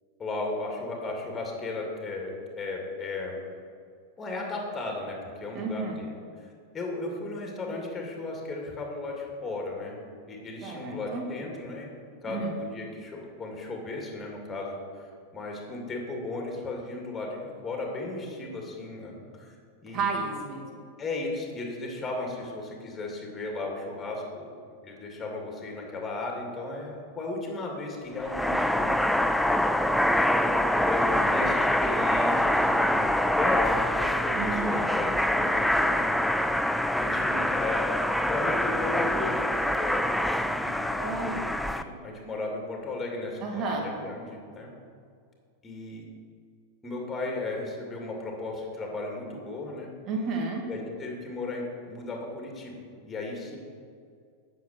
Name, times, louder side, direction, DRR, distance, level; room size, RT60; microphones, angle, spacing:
voice 1, 0.2-3.4 4.2-6.1 6.7-10.0 10.3-11.9 12.2-19.6 19.8-20.1 21.0-24.5 24.8-29.0 30.2-30.5 30.8-33.0 33.4-36.0 37.0-37.9 38.3-41.2 41.8-44.7 45.6-46.0 46.8-49.9 50.7-53.6, left 2 dB, 20° left, 0 dB, 2.4 m, -35 dB
voice 2, 5.5-6.0 10.6-11.2 12.2-12.6 19.9-20.8 34.3-34.9 41.0-41.4 43.4-43.9 50.0-50.6, right 4 dB, 35° right, 1 dB, 2.0 m, -32 dB
sound 1, 28.2-41.8, left 1 dB, ahead, 0.4 m, -25 dB
9.4 x 6.8 x 6.6 m, 2.2 s
figure-of-eight pair, 90°, 0 cm